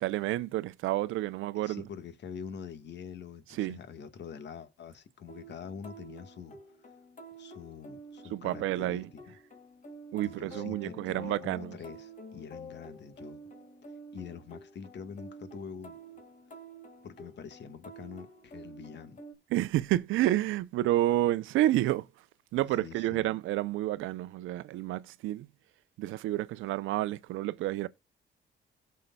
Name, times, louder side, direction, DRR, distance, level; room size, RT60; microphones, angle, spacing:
voice 1, 0.0-1.8 3.5-3.8 8.3-9.1 10.1-11.8 19.5-22.1 22.5-25.5 26.0-27.9, right 15 dB, 90° right, 0.6 m, -29 dB
voice 2, 1.5-6.6 7.4-9.3 10.2-13.4 14.1-16.0 17.0-19.2 22.8-23.3, left 7 dB, 60° left, 1.5 m, -45 dB
sound 1, 5.3-19.3, right 1 dB, 40° left, 2.2 m, -49 dB
17.0 x 6.5 x 2.3 m
cardioid pair, 90°, 20 cm